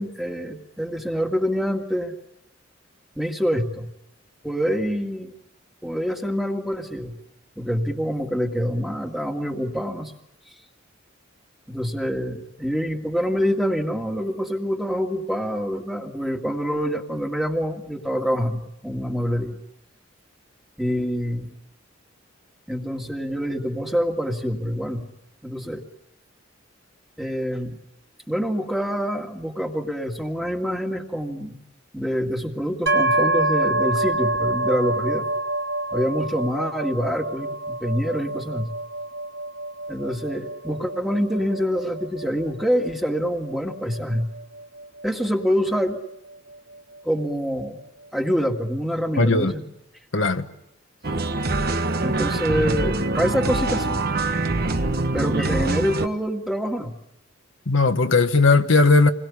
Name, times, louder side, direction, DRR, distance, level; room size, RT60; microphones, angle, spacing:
voice 1, 0.0-2.1 3.2-3.9 4.4-5.3 5.8-7.2 7.6-10.1 11.7-19.6 20.8-21.5 22.7-25.1 25.4-25.8 27.2-27.8 28.3-31.6 31.9-35.3 35.9-38.7 39.9-44.3 45.0-46.0 47.0-47.8 48.1-49.6 52.0-54.0 55.1-56.9, equal, ahead, 2.0 m, -26 dB
sound 1, 32.9-46.5, right 2 dB, 65° right, 3.5 m, -27 dB
voice 2, 49.2-49.5 50.1-50.4 57.7-59.1, left 3 dB, 70° left, 1.3 m, -17 dB
sound 2, 51.0-56.1, right 2 dB, 50° right, 1.2 m, -24 dB
28.0 x 21.5 x 8.4 m
head